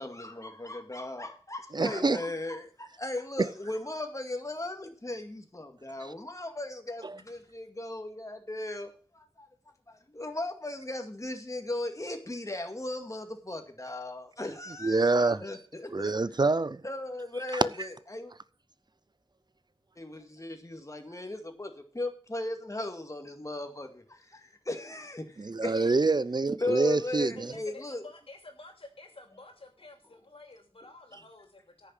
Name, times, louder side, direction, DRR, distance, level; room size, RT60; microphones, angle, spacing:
voice 1, 0.0-9.5 9.9-16.1 16.8-18.3 20.0-26.0 26.6-28.0, left 2 dB, 35° left, 2.1 m, -37 dB
voice 2, 1.7-2.2 7.0-7.2 14.8-15.4 15.9-16.8 17.5-17.6 25.4-27.5, right 3 dB, 50° right, 0.5 m, -26 dB
voice 3, 27.4-31.9, left 2 dB, 75° left, 3.0 m, -50 dB
9.9 x 6.7 x 7.6 m
wide cardioid pair, 40°, 10 cm